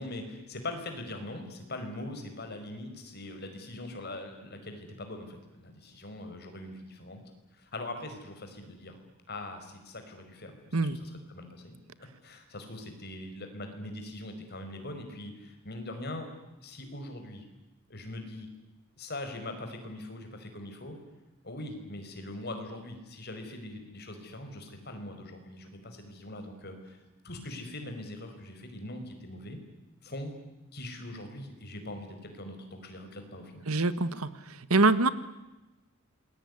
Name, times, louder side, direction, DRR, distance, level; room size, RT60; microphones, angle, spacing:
voice 1, 0.0-7.2 7.5-9.0 9.3-11.8 12.2-16.3 16.6-17.4 17.9-18.5 19.0-21.0 21.4-29.6 30.0-30.3 30.7-33.7, left 1 dB, 50° left, 6 dB, 5.4 m, -42 dB
voice 2, 33.7-35.1, right 3 dB, 85° right, 14 dB, 1.6 m, -25 dB
27.5 x 21.5 x 9.8 m, 1.0 s
head